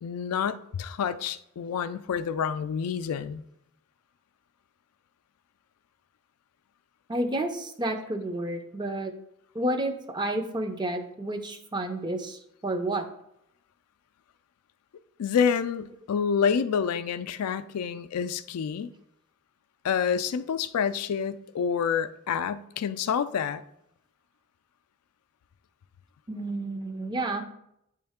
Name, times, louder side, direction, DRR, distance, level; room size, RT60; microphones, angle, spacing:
voice 1, 0.0-3.4 15.2-18.9 19.8-23.6, left 7 dB, 85° left, 0.4 m, -28 dB
voice 2, 7.1-9.1 9.5-13.0 26.3-27.4, right 1 dB, 20° right, 0.5 m, -30 dB
8.6 x 3.2 x 3.5 m
head